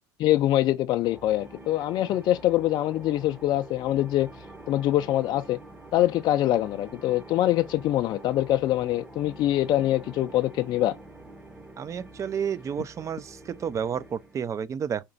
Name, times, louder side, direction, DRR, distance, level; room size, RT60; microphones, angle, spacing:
voice 1, 0.2-4.3 4.7-5.6 5.9-11.0, left 14 dB, 50° left, 0.3 m, -24 dB
sound 1, 1.0-14.4, right 1 dB, 10° right, 0.8 m, -46 dB
voice 2, 11.8-15.0, right 7 dB, 30° right, 0.4 m, -31 dB
4.3 x 2.9 x 3.9 m
supercardioid pair, 95°, 10 cm